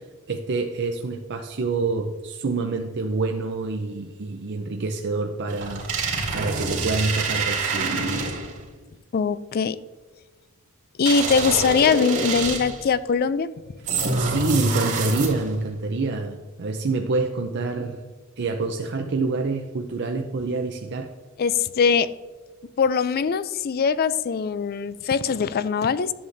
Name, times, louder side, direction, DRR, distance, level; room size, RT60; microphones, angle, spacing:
voice 1, 0.3-7.9 14.2-18.0 18.4-21.1, right 3 dB, 55° right, 3 dB, 0.6 m, -27 dB
sound 1, 5.5-8.6 11.1-12.9 13.9-15.6, right 3 dB, 70° right, 2.1 m, -26 dB
voice 2, 9.1-9.8 11.0-13.5 21.4-22.1 22.8-26.1, left 6 dB, 45° left, 16 dB, 0.4 m, -22 dB
11.5 x 7.5 x 2.6 m, 1.3 s
head